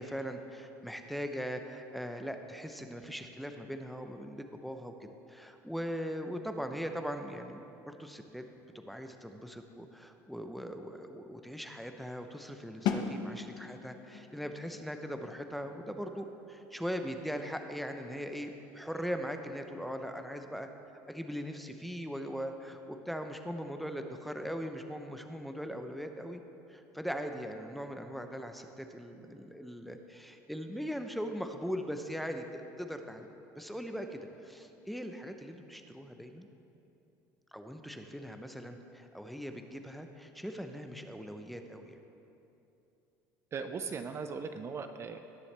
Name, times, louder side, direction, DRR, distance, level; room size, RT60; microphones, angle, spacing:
voice 1, 0.0-8.4 8.7-20.7 21.1-26.4 26.7-33.3 33.5-36.5 37.5-42.0, equal, ahead, 5 dB, 0.7 m, -40 dB
sound 1, 12.9-18.6, left 7 dB, 70° left, 0.9 m, -40 dB
voice 2, 43.5-45.2, right 5 dB, 35° right, 8 dB, 0.6 m, -38 dB
18.5 x 7.0 x 3.4 m, 2.8 s
supercardioid pair, 105°, 8 cm